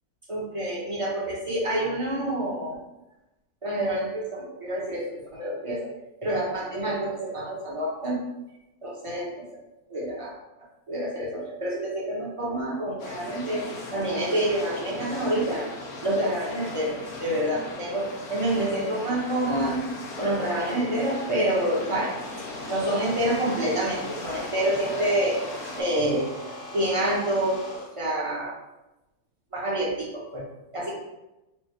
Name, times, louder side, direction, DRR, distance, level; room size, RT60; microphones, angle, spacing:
voice 1, 0.3-2.8 3.6-5.9 6.2-8.2 8.8-9.3 9.9-10.3 10.9-15.7 16.0-19.9 20.2-22.2 22.7-25.4 25.8-28.5 29.5-30.4 30.7-30.9, right 1 dB, 25° right, -5 dB, 0.9 m, -27 dB
sound 1, 13.0-25.8, left 2 dB, 90° left, 1.3 m, -38 dB
sound 2, 21.5-27.9, left 1 dB, 45° left, 1.0 m, -41 dB
4.7 x 2.5 x 3.2 m, 0.97 s
omnidirectional pair, 1.5 m